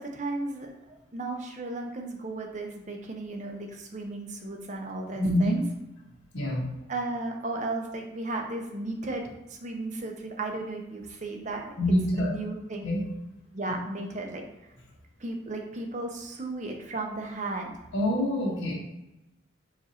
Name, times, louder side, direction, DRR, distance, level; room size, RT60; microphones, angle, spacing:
voice 1, 0.0-5.6 6.9-11.7 12.2-12.9 13.5-14.4 15.2-17.7, right 2 dB, 40° right, 2 dB, 0.6 m, -35 dB
voice 2, 5.2-5.6 6.3-6.6 11.8-12.3 12.8-13.0 13.7-13.8 17.9-18.7, left 1 dB, 80° left, -3 dB, 1.5 m, -25 dB
4.8 x 2.6 x 4.3 m, 0.97 s
head